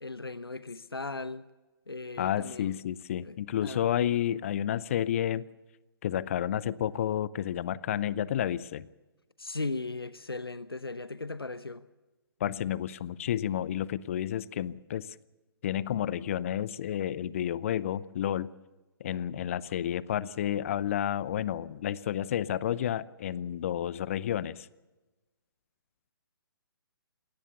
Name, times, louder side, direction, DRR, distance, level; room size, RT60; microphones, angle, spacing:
voice 1, 0.0-1.5 1.9-2.7 3.2-3.9 9.4-11.9, left 3 dB, 75° left, 0.9 m, -37 dB
voice 2, 2.2-5.5 6.0-8.9 12.4-15.1 15.6-18.5 19.0-24.7, left 10 dB, 35° left, 0.6 m, -31 dB
21.0 x 18.5 x 7.0 m
figure-of-eight pair, 130°, 12 cm